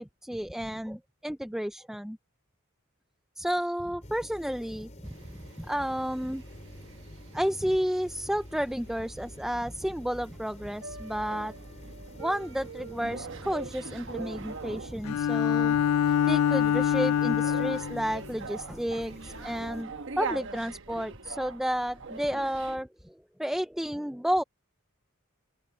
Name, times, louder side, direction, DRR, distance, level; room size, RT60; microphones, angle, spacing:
voice 1, 0.0-2.2 3.4-4.9 5.6-6.4 7.3-11.5 12.2-15.8 16.1-24.4, equal, ahead, 0.5 m, -31 dB
sound 1, 4.0-19.8, left 1 dB, 30° left, 4.0 m, -49 dB
sound 2, 5.0-22.8, right 4 dB, 60° right, 1.1 m, -43 dB
Bowed string instrument, 15.0-18.1, left 9 dB, 90° left, 0.4 m, -25 dB
open air
head